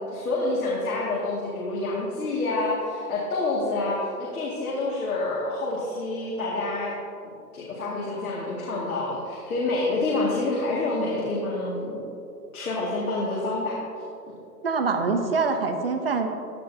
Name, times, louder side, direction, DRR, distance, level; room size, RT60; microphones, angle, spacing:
voice 1, 0.0-6.9 7.2-12.0 12.5-13.8, left 2 dB, 60° left, -5 dB, 2.2 m, -28 dB
voice 2, 14.6-16.3, right 4 dB, 35° right, 6 dB, 0.8 m, -24 dB
15.0 x 10.0 x 2.8 m, 2.6 s
hypercardioid pair, 175°, 50 cm